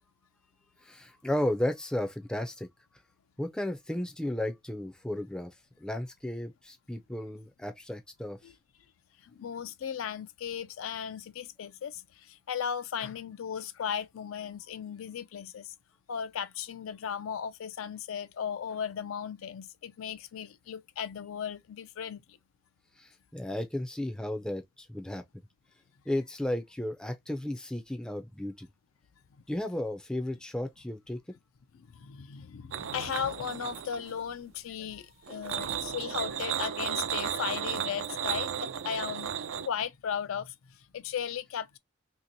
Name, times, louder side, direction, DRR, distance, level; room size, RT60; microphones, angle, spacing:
voice 1, 0.8-2.7 3.4-8.4 23.0-25.2 26.1-28.7 29.5-31.2, left 1 dB, 5° left, 0.4 m, -34 dB
voice 2, 9.2-15.7 16.1-22.2 31.8-39.4 39.6-41.8, left 8 dB, 80° left, 0.4 m, -36 dB
sound 1, 32.7-34.2 35.3-39.7, right 9 dB, 75° right, 0.4 m, -34 dB
2.9 x 2.9 x 2.6 m
head